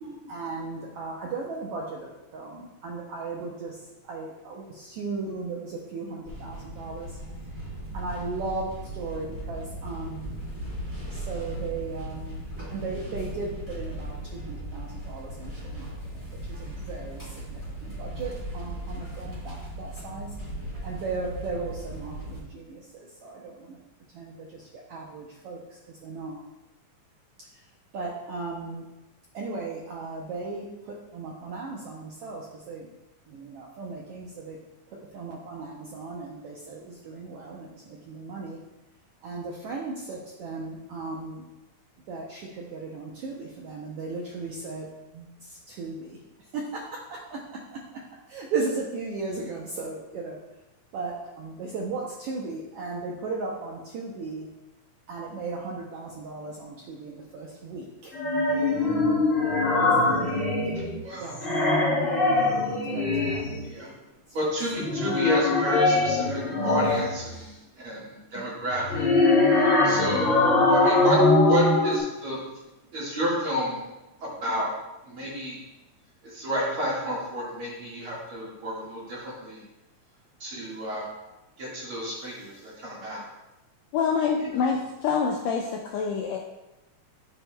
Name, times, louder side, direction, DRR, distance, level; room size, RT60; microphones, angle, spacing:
voice 1, 0.3-7.2 7.9-10.4 11.1-12.4 12.7-20.3 20.8-23.8 24.1-26.4 27.5-27.6 27.9-28.8 29.3-32.9 33.3-34.6 34.9-38.6 39.2-41.4 42.1-44.9 45.1-46.2 46.5-48.0 48.3-50.4 50.9-54.5 55.1-58.1 59.7-60.3 60.6-60.7 61.2-62.3 62.8-64.0 68.4-68.5, right 3 dB, 80° right, -2 dB, 1.3 m, -36 dB
sound 1, 6.2-22.4, right 1 dB, 10° right, 1.2 m, -37 dB
sound 2, 58.1-61.0 61.3-63.6 64.7-67.3 68.7-72.0, left 2 dB, 30° left, 1.5 m, -22 dB
voice 2, 64.3-67.5 67.8-69.1 69.8-72.4 72.9-73.8 74.2-74.7 75.1-75.6 76.3-79.6 80.4-81.0 81.6-83.2 84.4-84.5, equal, 50° right, -6 dB, 2.3 m, -30 dB
voice 3, 83.9-86.4, left 6 dB, 80° left, 0 dB, 1.7 m, -26 dB
10.0 x 4.4 x 2.2 m, 1.0 s
omnidirectional pair, 3.4 m